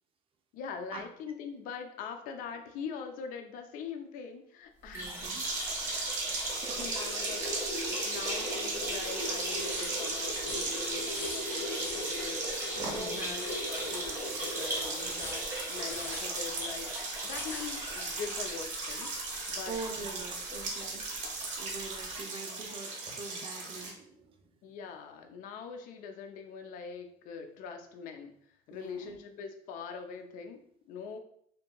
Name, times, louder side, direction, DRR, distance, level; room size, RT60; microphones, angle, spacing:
voice 1, 0.5-5.3 6.8-15.4 15.7-16.9 17.2-19.8 20.5-20.6 22.1-22.2 24.6-31.2, left 6 dB, 65° left, 6 dB, 0.4 m, -43 dB
sound 1, 4.8-20.2 20.6-20.7 21.0-21.1 22.1-22.2, equal, 15° right, 1.3 m, -38 dB
voice 2, 4.9-5.4 6.2-7.0 12.9-13.3 15.0-15.2 19.7-21.3 21.6-24.5 28.7-29.2, right 4 dB, 35° right, 4 dB, 0.5 m, -44 dB
sound 2, 5.2-23.9, right 3 dB, 55° right, 1.0 m, -37 dB
sound 3, 8.9-11.5 11.8-12.7 13.0-18.5 18.9-19.8, left 2 dB, 15° left, 0.6 m, -47 dB
2.9 x 2.5 x 2.2 m, 0.67 s
supercardioid pair, 100°, 15 cm